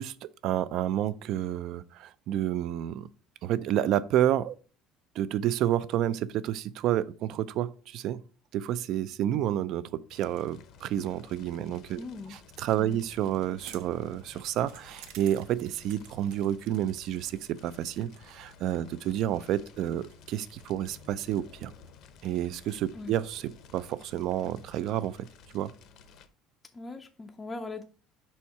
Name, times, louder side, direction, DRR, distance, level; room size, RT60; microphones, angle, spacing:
voice 1, 0.0-3.1 3.4-4.6 5.1-8.2 8.5-12.0 12.6-21.7 22.2-25.3 25.5-25.7, right 11 dB, 55° right, 0.4 m, -30 dB
Fire, 10.1-26.3, left 6 dB, 50° left, 0.7 m, -54 dB
voice 2, 12.0-12.4 12.8-13.0 22.9-23.2 26.7-27.8, left 3 dB, 15° left, 0.4 m, -40 dB
sound 1, 13.1-23.3, right 10 dB, 75° right, 0.8 m, -56 dB
5.3 x 4.3 x 4.7 m
cardioid pair, 160°, 0 cm